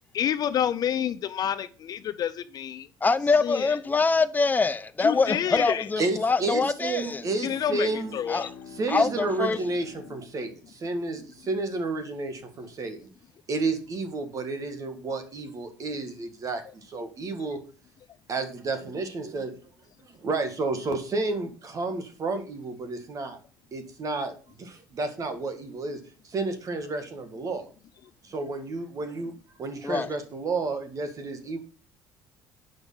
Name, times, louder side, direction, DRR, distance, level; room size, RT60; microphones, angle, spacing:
voice 1, 0.1-2.9 3.4-3.7 5.0-5.8 7.4-8.5, left 9 dB, 50° left, 0.6 m, -28 dB
voice 2, 3.0-7.2 8.3-8.5 8.9-9.6 29.8-30.1, left 4 dB, 20° left, 0.7 m, -24 dB
voice 3, 6.0-8.2 8.8-13.1 13.5-17.6 18.3-19.5 20.2-23.4 23.7-27.7 28.2-29.3 29.6-31.6, right 3 dB, 40° right, 1.8 m, -31 dB
Bowed string instrument, 6.8-11.1, left 6 dB, 90° left, 1.3 m, -47 dB
8.2 x 5.8 x 5.7 m
cardioid pair, 105°, 8 cm